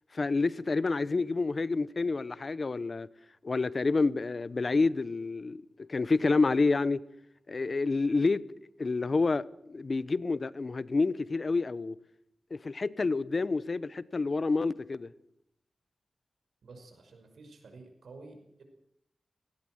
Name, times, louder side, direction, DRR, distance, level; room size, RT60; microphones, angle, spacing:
voice 1, 0.1-3.1 3.4-7.0 7.5-8.4 8.8-12.0 12.5-15.1, left 3 dB, 45° left, 0.8 m, -28 dB
voice 2, 16.6-18.6, right 3 dB, 90° right, 5.8 m, -51 dB
18.5 x 18.0 x 7.8 m
wide cardioid pair, 80°, 0 cm